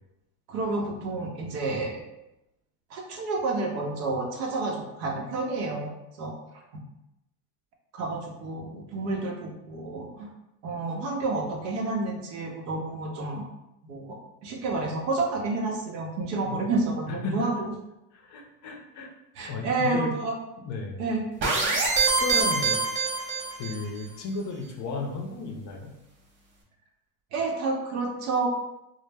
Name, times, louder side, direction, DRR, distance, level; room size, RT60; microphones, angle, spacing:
voice 1, 0.5-2.0 2.9-5.9 6.2-6.3 7.9-10.3 10.6-13.4 13.8-14.2 14.4-17.7 19.4-20.3 21.0-21.2 27.3-28.5, right 3 dB, 80° right, 1 dB, 0.8 m, -29 dB
voice 2, 17.1-17.6 18.1-19.1 19.5-20.2 20.6-21.0 22.0-22.8 23.6-25.9, left 3 dB, 40° left, 1 dB, 0.5 m, -34 dB
sound 1, 21.4-23.8, right 4 dB, 25° right, 0.5 m, -25 dB
2.1 x 2.0 x 3.2 m, 0.90 s
supercardioid pair, 100°, 48 cm